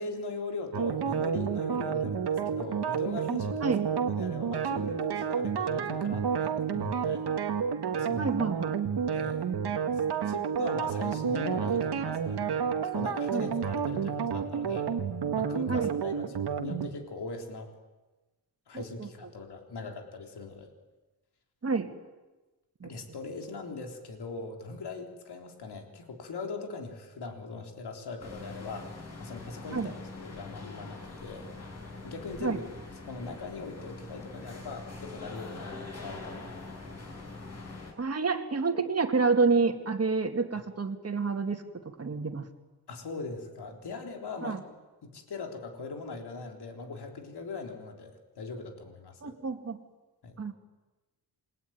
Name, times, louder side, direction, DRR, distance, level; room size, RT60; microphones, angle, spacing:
voice 1, 0.0-3.7 4.0-7.3 8.0-8.4 9.1-9.4 9.9-14.9 15.3-17.7 18.7-20.7 22.8-28.9 29.2-31.5 32.0-32.6 33.1-36.6 42.9-44.6 45.0-49.3 50.2-50.4, left 3 dB, 80° left, 3 dB, 3.8 m, -40 dB
sound 1, 0.7-16.9, right 7 dB, 85° right, 1.9 m, -30 dB
voice 2, 8.2-8.8 13.3-13.5 15.7-15.9 18.7-19.1 21.6-21.9 22.8-22.9 29.7-29.9 32.4-32.6 38.0-42.4 44.4-44.6 49.2-49.8 50.4-50.6, right 4 dB, 40° right, 6 dB, 2.4 m, -28 dB
sound 2, 28.2-37.9, left 3 dB, 40° left, 7.0 m, -43 dB
28.0 x 22.0 x 9.4 m, 1.2 s
wide cardioid pair, 155°, 39 cm